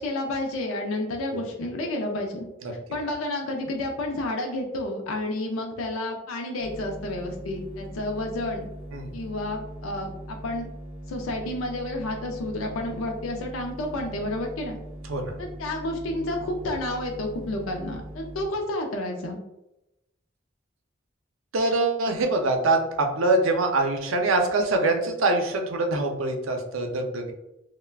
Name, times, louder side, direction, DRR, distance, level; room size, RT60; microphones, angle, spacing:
voice 1, 0.0-2.5 2.7-8.7 9.1-10.7 11.1-14.8 15.4-19.4, left 1 dB, 85° left, 2 dB, 0.4 m, -30 dB
sound 1, 6.6-18.5, right 1 dB, 30° right, 0.5 m, -41 dB
voice 2, 21.5-27.3, right 2 dB, 80° right, 3 dB, 0.5 m, -24 dB
2.3 x 2.1 x 3.2 m, 0.90 s
head